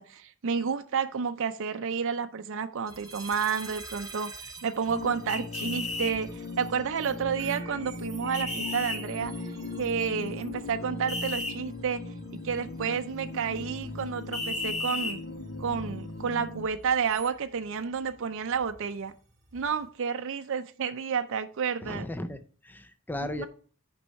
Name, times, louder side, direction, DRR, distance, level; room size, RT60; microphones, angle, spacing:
voice 1, 0.0-9.3 9.8-12.0 12.4-15.2 15.6-19.1 19.5-22.1 23.2-23.5, right 6 dB, 60° right, 7 dB, 0.5 m, -30 dB
sound 1, 2.9-19.9, right 4 dB, 15° right, 1.3 m, -49 dB
sound 2, 4.9-16.7, left 2 dB, 60° left, 1.2 m, -39 dB
sound 3, 5.3-6.1 8.3-9.0 11.1-11.5 14.3-15.2, left 2 dB, 30° left, 1.5 m, -33 dB
voice 2, 21.8-23.5, left 1 dB, 10° left, 10 dB, 0.5 m, -36 dB
8.3 x 5.3 x 4.6 m, 0.42 s
head